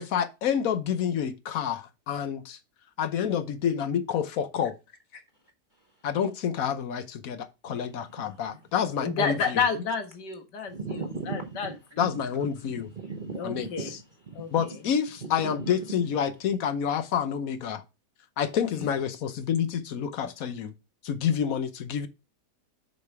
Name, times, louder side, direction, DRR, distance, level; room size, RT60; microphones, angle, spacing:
voice 1, 0.0-2.6 3.0-4.7 6.0-9.6 12.0-12.9 13.4-13.7 14.5-17.8 18.4-20.7 21.0-22.1, left 8 dB, 60° left, 1.1 m, -28 dB
voice 2, 5.7-6.1 7.7-7.8 8.1-8.6 10.7-12.1 12.6-14.6 15.2-15.8, right 4 dB, 45° right, 0.7 m, -38 dB
voice 3, 9.0-11.7 13.4-13.9 14.4-14.7 18.7-18.9, left 5 dB, 90° left, 1.9 m, -30 dB
6.5 x 5.3 x 4.6 m
omnidirectional pair, 1.8 m